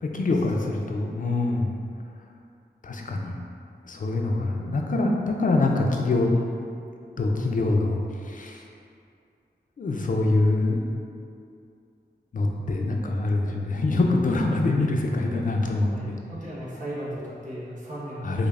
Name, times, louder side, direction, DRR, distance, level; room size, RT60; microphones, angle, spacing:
voice 1, 0.0-1.7 2.8-3.4 3.9-6.3 7.2-8.7 9.8-10.8 12.3-16.2 18.2-18.5, left 2 dB, 50° left, 1 dB, 0.4 m, -24 dB
voice 2, 0.6-1.1 6.3-6.4 14.5-14.6 15.9-18.5, equal, 45° right, -9 dB, 1.1 m, -37 dB
5.1 x 2.0 x 2.4 m, 2.4 s
wide cardioid pair, 85°, 18 cm